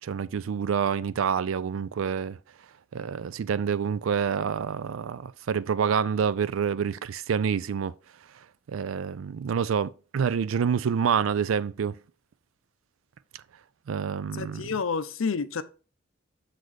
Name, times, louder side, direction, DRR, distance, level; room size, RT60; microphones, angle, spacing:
voice 1, 0.0-2.4 2.9-7.9 8.7-12.0 13.9-14.6, right 7 dB, 85° right, 0.4 m, -27 dB
voice 2, 14.3-15.6, left 5 dB, 90° left, 0.6 m, -29 dB
6.6 x 4.0 x 4.6 m
head